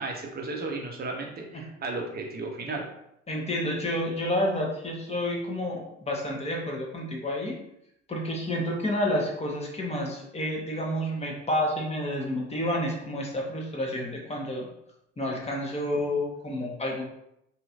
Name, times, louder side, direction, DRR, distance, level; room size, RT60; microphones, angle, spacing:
voice 1, 0.0-2.8, right 3 dB, 25° right, 1 dB, 0.8 m, -34 dB
voice 2, 3.3-7.6 8.1-14.7 15.2-17.0, left 1 dB, 15° left, -1 dB, 1.0 m, -29 dB
2.9 x 2.9 x 2.5 m, 0.78 s
figure-of-eight pair, 60°, 38 cm